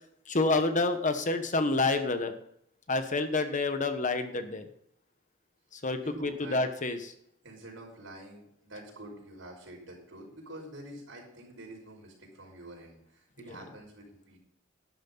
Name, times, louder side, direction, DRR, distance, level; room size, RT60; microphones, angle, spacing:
voice 1, 0.3-2.3 2.9-4.7 5.7-7.1 13.4-13.6, left 3 dB, 40° left, 8 dB, 1.2 m, -28 dB
voice 2, 6.0-6.6 7.4-14.4, right 1 dB, 85° right, -1 dB, 5.5 m, -47 dB
11.5 x 11.0 x 4.0 m, 0.70 s
head